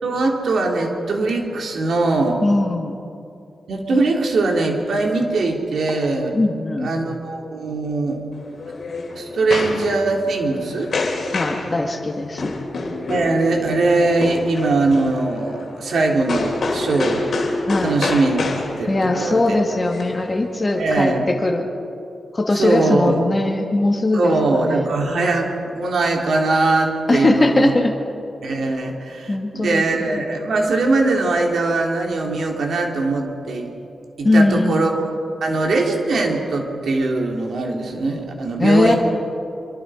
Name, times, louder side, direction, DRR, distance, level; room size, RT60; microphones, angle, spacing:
voice 1, 0.0-2.4 3.7-6.3 6.8-8.2 9.1-10.9 13.1-17.3 17.8-18.4 18.8-19.5 20.7-21.2 22.5-23.2 24.1-27.7 28.4-33.7 34.2-35.1 35.4-39.0, right 3 dB, 70° right, 1 dB, 3.5 m, -21 dB
voice 2, 2.4-3.0 6.3-6.9 11.3-12.6 17.7-18.0 18.9-21.7 22.3-24.9 27.1-27.9 29.3-30.2 34.2-34.9 38.6-38.9, left 2 dB, 25° left, 3 dB, 1.9 m, -20 dB
sound 1, 8.3-20.8, left 3 dB, 55° left, 3.0 m, -28 dB
26.0 x 24.5 x 5.1 m, 2.6 s
wide cardioid pair, 150°, 0 cm